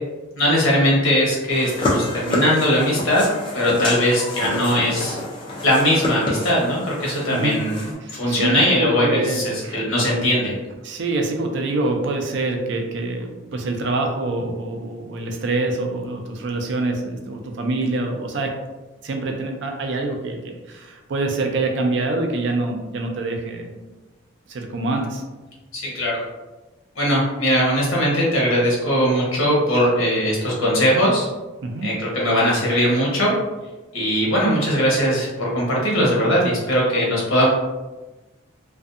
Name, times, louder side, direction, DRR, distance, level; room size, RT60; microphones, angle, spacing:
voice 1, 0.4-3.2 3.5-5.2 5.6-7.9 8.1-10.6 25.7-26.2 27.0-31.3 31.8-33.3 33.9-37.5, equal, 80° left, -3 dB, 0.9 m, -20 dB
sound 1, 1.5-7.9, left 1 dB, 25° left, 0.4 m, -28 dB
voice 2, 7.3-7.6 8.0-9.8 10.8-18.6 19.0-23.9 24.5-25.2 31.6-31.9, right 2 dB, 60° right, 3 dB, 0.4 m, -25 dB
2.5 x 2.2 x 2.5 m, 1.1 s
head